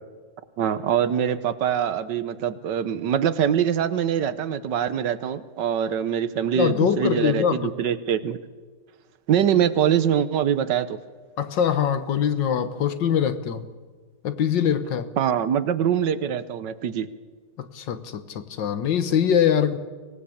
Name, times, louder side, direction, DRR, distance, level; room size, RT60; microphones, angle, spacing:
voice 1, 0.6-8.4 9.3-11.0 15.2-17.1, right 9 dB, 65° right, 1.5 m, -23 dB
voice 2, 6.6-7.7 11.4-13.7 14.2-15.1 17.6-19.8, left 8 dB, 70° left, 1.7 m, -23 dB
24.0 x 18.0 x 8.6 m
omnidirectional pair, 2.1 m